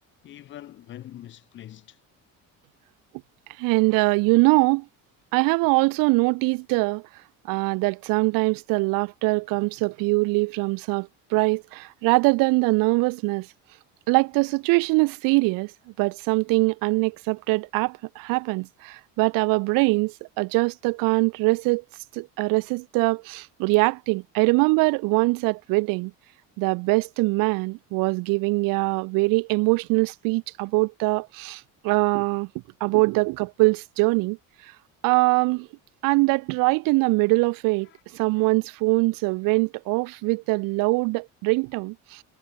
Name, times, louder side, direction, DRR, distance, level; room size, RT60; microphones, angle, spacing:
voice 1, 0.2-2.0 37.8-38.0 38.3-38.5 39.0-39.1, left 12 dB, 35° left, 0.7 m, -44 dB
voice 2, 3.6-4.8 5.3-7.0 7.4-13.5 14.1-15.7 16.0-21.8 22.1-26.1 26.6-32.5 32.8-34.4 35.0-35.7 36.0-37.9 38.1-42.2, right 26 dB, 75° right, 0.5 m, -23 dB
cardioid pair, 170°, 34 cm